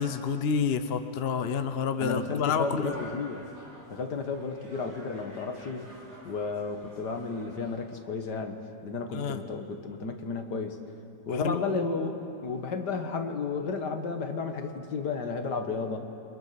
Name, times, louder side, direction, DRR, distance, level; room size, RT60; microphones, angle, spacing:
voice 1, 0.0-3.1 9.1-9.4 11.3-11.6, left 6 dB, 45° left, 9 dB, 0.9 m, -29 dB
voice 2, 2.0-3.5 3.9-5.9 6.2-10.8 11.3-12.1 12.4-16.0, left 4 dB, 70° left, 5 dB, 2.1 m, -33 dB
sound 1, 2.8-7.8, left 1 dB, 50° right, 7.0 m, -50 dB
29.0 x 24.0 x 5.9 m, 2.8 s
omnidirectional pair, 1.9 m